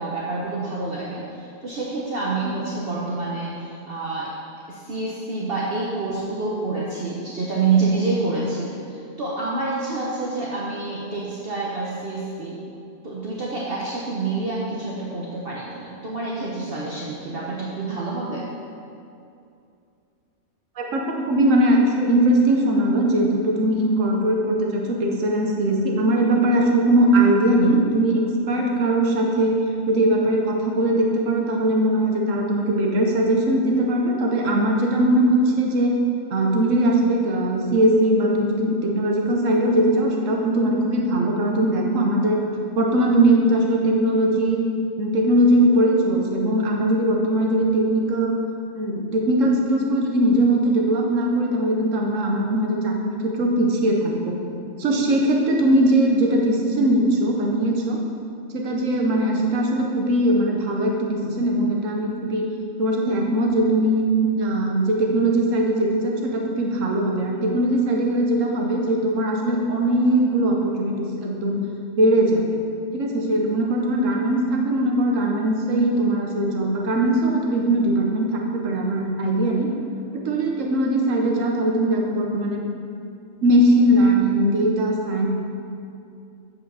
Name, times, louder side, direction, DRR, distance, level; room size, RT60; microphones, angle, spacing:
voice 1, 0.0-4.3 4.7-12.6 13.0-18.5, right 3 dB, 50° right, -5 dB, 1.1 m, -27 dB
voice 2, 20.8-29.5 29.9-36.0 36.3-42.4 42.7-44.6 45.0-48.4 48.7-54.4 54.8-58.0 58.5-62.5 62.8-64.0 64.3-71.6 72.0-72.6 72.9-79.7 80.1-82.6 83.4-85.3, right 1 dB, 85° right, 0 dB, 1.3 m, -20 dB
7.5 x 5.1 x 6.8 m, 2.5 s
omnidirectional pair, 1.3 m